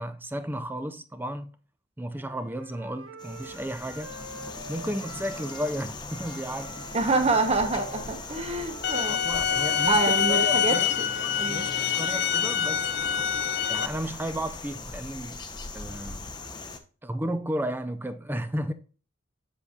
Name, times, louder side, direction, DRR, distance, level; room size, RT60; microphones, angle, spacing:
voice 1, 0.0-1.6 2.0-4.2 4.7-6.9 9.1-10.9 11.5-12.9 13.7-15.4 15.7-16.3 17.0-18.7, equal, 10° right, 0.5 m, -33 dB
Wind instrument woodwind instrument, 2.1-5.8 6.1-10.1, right 1 dB, 80° right, 1.0 m, -46 dB
sound 1, 3.2-16.8, left 3 dB, 20° left, 0.7 m, -40 dB
voice 2, 6.9-9.2 9.9-10.7 11.4-11.7, right 3 dB, 30° right, 0.9 m, -26 dB
sound 2, 8.8-13.9, left 8 dB, 55° left, 0.5 m, -26 dB
7.4 x 6.7 x 2.4 m
head